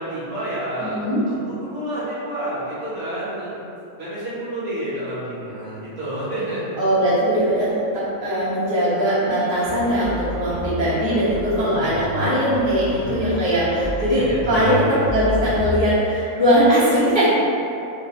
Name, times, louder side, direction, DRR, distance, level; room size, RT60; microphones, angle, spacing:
voice 1, 0.0-3.6 4.0-6.8 13.0-13.2 14.1-15.0, right 1 dB, 55° right, -11 dB, 1.2 m, -29 dB
voice 2, 6.8-17.3, equal, 20° right, -12 dB, 0.9 m, -20 dB
sound 1, 9.6-15.8, left 2 dB, 65° left, 0.9 m, -30 dB
3.7 x 2.6 x 2.8 m, 2.7 s
omnidirectional pair, 1.6 m